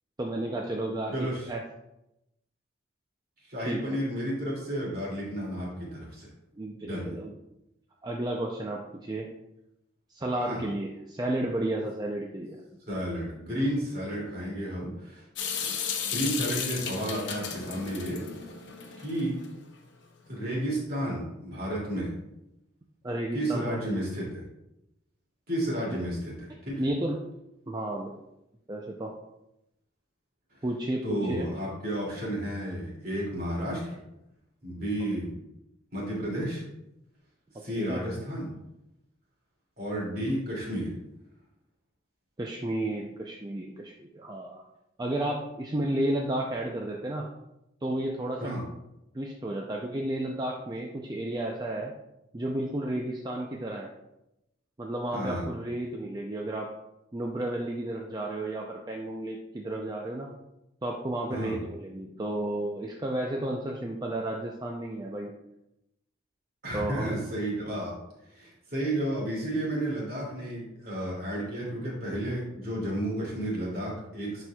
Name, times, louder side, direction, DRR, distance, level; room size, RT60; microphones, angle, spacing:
voice 1, 0.2-1.6 3.6-4.0 6.6-7.3 8.0-9.3 10.1-12.6 23.0-24.0 26.8-27.2 27.7-28.1 28.7-29.1 30.6-31.5 37.8-38.0 42.4-44.6 45.0-47.3 47.8-48.5 49.1-51.9 52.3-53.9 54.8-56.7 57.1-60.3 60.8-65.3 66.7-67.1, right 1 dB, 20° right, 0 dB, 0.4 m, -32 dB
voice 2, 1.1-1.5 3.4-6.3 6.8-7.1 10.3-10.6 12.9-15.2 15.6-15.7 16.1-18.2 19.0-19.4 20.3-22.1 23.3-24.4 25.5-26.8 31.0-34.0 34.6-35.4 35.9-36.6 37.6-38.5 39.8-40.9 48.4-48.6 55.1-55.4 61.3-61.6 66.6-67.9 68.3-74.4, right 1 dB, 50° right, -4 dB, 2.5 m, -32 dB
Water tap faucet / Sink (filling or washing) / Drip, 15.4-19.5, left 7 dB, 65° left, 0.8 m, -34 dB
11.0 x 4.3 x 2.3 m, 0.87 s
head